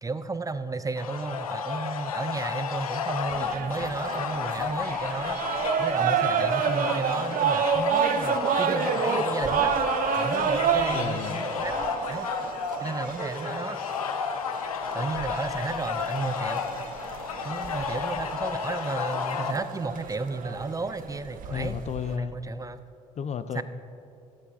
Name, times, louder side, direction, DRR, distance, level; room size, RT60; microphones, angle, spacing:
voice 1, 0.0-5.4 5.8-9.7 10.2-11.8 12.1-12.4 12.8-13.8 14.9-16.6 17.4-21.8 22.1-22.8 23.5-23.6, right 3 dB, 20° right, 12 dB, 0.5 m, -33 dB
sound 1, 1.0-19.5, left 6 dB, 90° left, 0.5 m, -32 dB
sound 2, 3.3-22.1, right 7 dB, 50° right, 0.8 m, -30 dB
voice 2, 10.9-11.4 21.5-22.4 23.2-23.6, left 7 dB, 40° left, 12 dB, 0.5 m, -32 dB
14.5 x 13.5 x 2.7 m, 2.7 s
hypercardioid pair, 50°, 18 cm